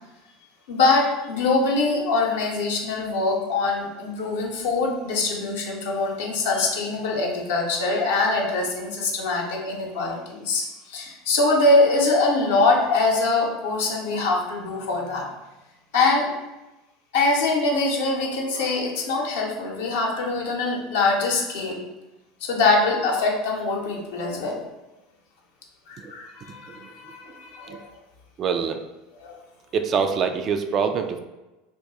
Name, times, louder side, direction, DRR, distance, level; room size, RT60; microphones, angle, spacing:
voice 1, 0.7-15.3 15.9-16.3 17.1-21.8 22.4-24.6 25.9-27.9 29.2-29.4, left 3 dB, 70° left, 0 dB, 0.7 m, -23 dB
voice 2, 28.4-28.8 29.7-31.2, right 6 dB, 40° right, 7 dB, 0.3 m, -24 dB
2.9 x 2.3 x 4.0 m, 1.0 s
hypercardioid pair, 80°, 0 cm